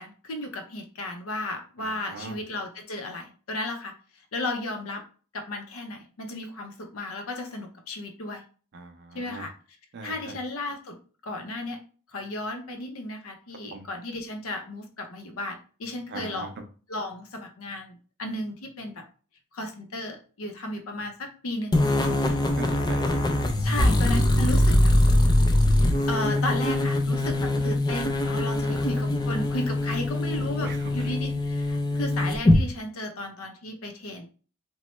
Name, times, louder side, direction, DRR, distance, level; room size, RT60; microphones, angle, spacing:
voice 1, 0.0-3.9 4.3-5.0 5.3-8.4 9.1-9.5 10.0-11.0 11.2-11.8 12.1-16.6 16.9-19.0 19.5-21.8 22.2-22.4 23.6-24.9 26.1-34.3, left 1 dB, 70° left, 4 dB, 0.6 m, -34 dB
voice 2, 1.8-2.3 8.7-9.5 9.9-10.3 13.7-13.9 16.1-16.5 22.1-23.3 23.6-23.7 28.6-28.9 30.6-30.9, right 3 dB, 50° right, 5 dB, 0.5 m, -40 dB
sound 1, 21.7-32.6, left 1 dB, 20° left, 0.3 m, -23 dB
3.0 x 2.1 x 3.0 m, 0.40 s
head